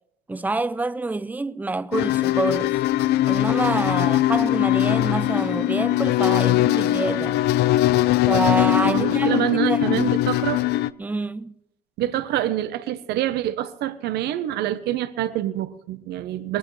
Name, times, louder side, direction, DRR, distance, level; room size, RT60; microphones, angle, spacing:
voice 1, 0.3-2.8 3.3-7.4 8.3-10.1 11.0-11.5, right 3 dB, 10° right, 0.5 m, -27 dB
sound 1, 1.9-10.9, left 14 dB, 75° left, 0.5 m, -21 dB
voice 2, 8.8-10.7 12.0-16.6, right 13 dB, 75° right, 0.9 m, -26 dB
20.0 x 15.5 x 3.2 m
cardioid pair, 110°, 17 cm